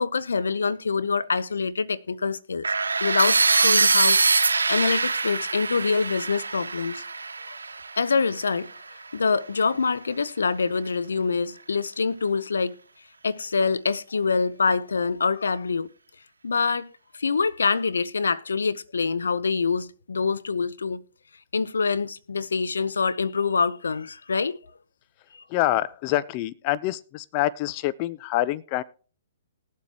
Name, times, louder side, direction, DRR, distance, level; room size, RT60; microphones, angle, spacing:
voice 1, 0.0-2.7 3.0-4.2 4.5-7.0 7.5-7.6 8.0-8.7 9.1-12.8 13.2-15.9 16.4-16.9 17.1-21.0 21.5-24.6, left 4 dB, 85° left, 0.6 m, -25 dB
sound 1, 2.6-8.6, right 4 dB, 90° right, 1.0 m, -23 dB
voice 2, 25.5-28.8, left 15 dB, 35° left, 0.5 m, -26 dB
20.0 x 7.5 x 2.8 m
hypercardioid pair, 135°, 0 cm